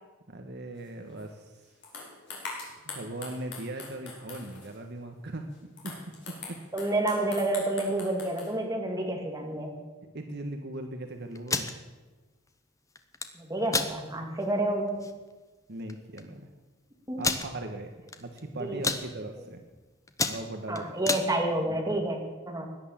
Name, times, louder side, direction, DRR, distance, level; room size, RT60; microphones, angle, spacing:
voice 1, 0.3-1.7 2.8-6.6 10.0-11.8 15.7-16.5 17.2-19.6 20.3-20.9 21.7-21.8, right 1 dB, 50° right, 5 dB, 1.2 m, -39 dB
sound 1, 1.2-1.3 1.8-4.8 5.5-8.5, left 4 dB, 50° left, 4.3 m, -43 dB
voice 2, 6.7-9.7 13.4-15.1 17.1-17.3 18.6-18.8 20.7-22.7, right 1 dB, 15° right, 1 dB, 2.3 m, -29 dB
sound 2, 11.3-11.7 13.0-13.3 13.7-13.9 14.4-14.5 14.9-15.1 15.9-16.0 16.2-16.3 17.2-17.5 18.1-18.4 18.7-19.0 19.6-19.8 20.1-21.3, left 4 dB, 15° left, 0.9 m, -29 dB
17.0 x 11.0 x 7.4 m, 1.2 s
head